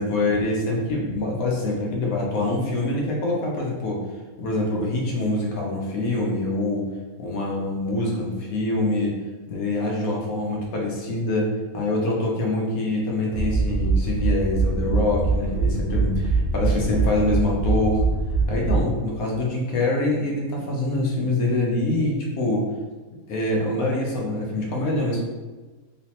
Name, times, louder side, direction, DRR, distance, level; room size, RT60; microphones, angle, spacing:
voice 1, 0.0-4.0 4.4-6.9 7.2-9.2 9.5-11.5 11.7-18.0 18.5-22.6 23.3-25.2, left 2 dB, 75° left, -2 dB, 1.2 m, -25 dB
sound 1, 13.3-19.1, right 3 dB, 85° right, 0.5 m, -23 dB
3.2 x 3.1 x 2.9 m, 1.3 s
omnidirectional pair, 1.5 m